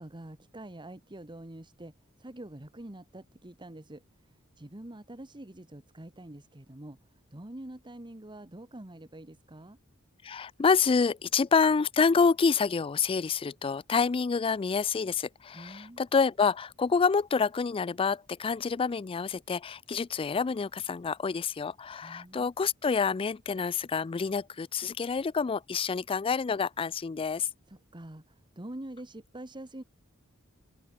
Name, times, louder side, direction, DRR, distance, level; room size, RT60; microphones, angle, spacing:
voice 1, 0.0-1.9 2.2-4.0 4.6-7.0 7.3-9.8 15.5-16.0 22.0-22.5 27.7-29.8, right 1 dB, 20° right, 1.4 m, -45 dB
voice 2, 10.2-27.5, left 5 dB, 25° left, 0.3 m, -27 dB
head